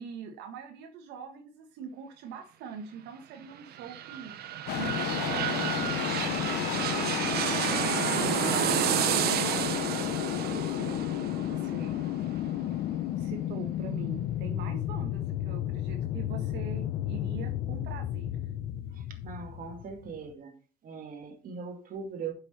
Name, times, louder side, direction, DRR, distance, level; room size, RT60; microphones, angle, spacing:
voice 1, 0.0-4.3 4.8-7.2 7.6-8.3 8.7-9.9 10.4-12.0 13.2-18.3, right 6 dB, 85° right, 1.6 m, -43 dB
sound 1, 3.5-13.1 13.6-13.7, right 10 dB, 70° right, 1.1 m, -31 dB
sound 2, 4.7-20.3, left 13 dB, 80° left, 0.7 m, -32 dB
voice 2, 19.0-20.5 20.8-22.3, right 5 dB, 55° right, 2.6 m, -40 dB
8.2 x 6.6 x 5.7 m
cardioid pair, 110°, 17 cm